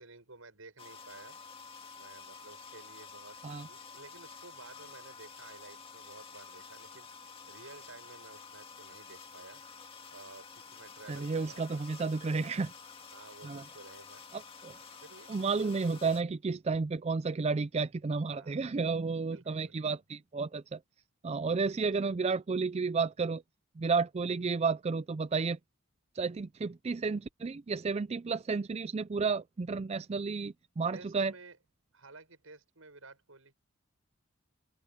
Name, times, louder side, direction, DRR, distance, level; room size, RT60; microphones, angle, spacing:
voice 1, 0.0-1.4 2.0-7.1 7.5-9.6 10.1-11.9 13.1-14.2 15.0-15.3 18.3-18.6 19.3-19.8 21.7-22.1 30.9-31.6 31.9-33.5, right 3 dB, 85° right, 7.2 m, -53 dB
sound 1, 0.8-16.2, left 5 dB, 25° left, 2.0 m, -50 dB
voice 2, 11.1-12.7 13.4-13.6 14.3-14.8 15.3-20.8 21.2-23.4 23.8-25.6 26.1-31.3, right 4 dB, 30° right, 0.4 m, -32 dB
open air
head